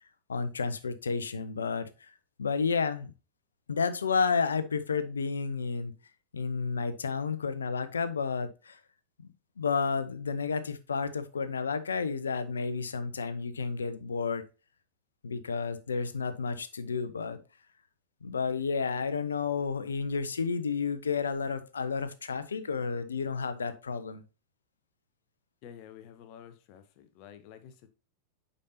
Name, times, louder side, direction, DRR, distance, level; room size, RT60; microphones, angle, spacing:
voice 1, 0.3-2.1 2.4-3.1 3.7-5.9 6.3-8.8 9.6-14.4 15.2-17.4 18.2-24.2, left 5 dB, 70° left, 0.8 m, -31 dB
voice 2, 25.6-27.9, left 9 dB, 45° left, 0.9 m, -50 dB
8.4 x 5.5 x 2.8 m
figure-of-eight pair, 90°, 0 cm